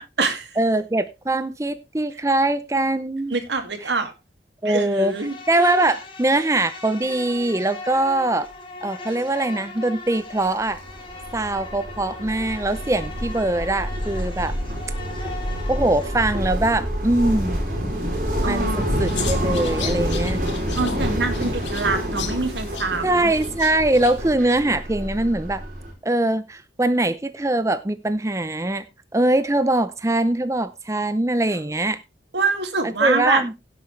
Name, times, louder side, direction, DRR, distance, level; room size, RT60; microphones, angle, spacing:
voice 1, 0.0-0.5 3.3-4.1 4.6-5.3 18.4-19.2 20.8-23.3 32.3-33.4, right 3 dB, 80° right, 2.3 m, -25 dB
voice 2, 0.6-3.4 3.8-3.9 4.6-5.2 5.5-8.5 8.8-10.8 11.3-14.5 15.7-17.6 18.4-20.4 23.0-25.6 26.0-28.8 29.1-32.0 32.8-33.5, right 2 dB, 15° right, 0.5 m, -22 dB
Insect, 5.0-16.4, left 3 dB, 30° left, 3.8 m, -39 dB
sound 1, 10.7-25.9, equal, 50° right, 4.7 m, -27 dB
sound 2, 19.0-24.4, left 5 dB, 90° left, 2.3 m, -35 dB
16.5 x 8.0 x 3.2 m
head